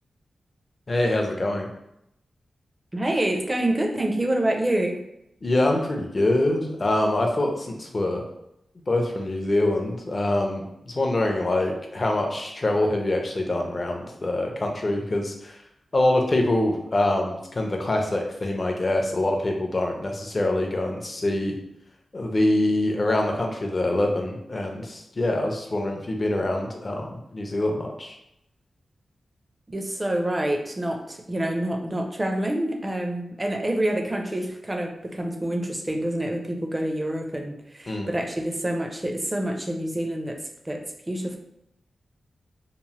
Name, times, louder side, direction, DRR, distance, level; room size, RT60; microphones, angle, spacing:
voice 1, 0.9-1.7 5.4-8.2 8.9-15.6 15.9-21.5 22.1-28.2 37.9-38.1, left 1 dB, 35° left, 2 dB, 0.5 m, -25 dB
voice 2, 2.9-5.0 29.7-41.4, right 1 dB, 20° right, 2 dB, 0.4 m, -27 dB
3.0 x 2.0 x 2.8 m, 0.82 s
wide cardioid pair, 110°, 0 cm